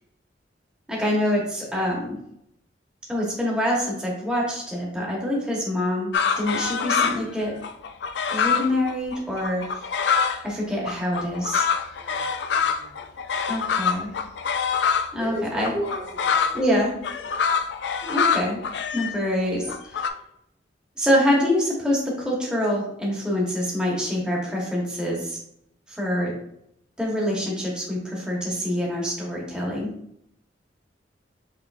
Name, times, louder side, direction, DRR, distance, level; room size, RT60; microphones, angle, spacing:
voice 1, 0.9-2.2 3.1-6.1 6.4-7.5 8.3-9.6 10.4-11.7 13.5-14.1 15.1-15.7 16.5-16.9 18.0-18.6 18.9-20.1 21.0-25.4 25.9-26.3 27.0-29.9, equal, 5° right, -4 dB, 1.1 m, -25 dB
sound 1, 6.1-7.3 7.6-10.4 10.9-15.1 15.6-20.1, left 6 dB, 70° left, 0.3 m, -25 dB
voice 2, 11.9-13.4 15.2-16.8 17.1-17.4, equal, 40° right, -8 dB, 1.2 m, -36 dB
5.6 x 3.3 x 2.4 m, 0.75 s
head